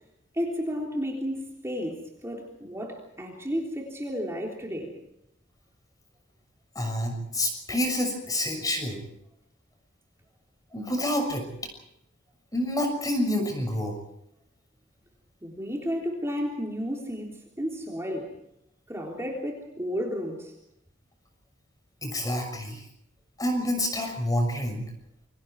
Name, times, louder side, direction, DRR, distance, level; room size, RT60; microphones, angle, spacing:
voice 1, 0.3-4.9 15.4-18.3 18.9-20.5, equal, 15° right, -1 dB, 3.4 m, -32 dB
voice 2, 6.7-9.0 10.7-11.5 12.5-14.0 22.0-22.8 23.4-24.8, left 1 dB, 20° left, 5 dB, 6.4 m, -28 dB
28.5 x 24.5 x 4.7 m, 0.78 s
head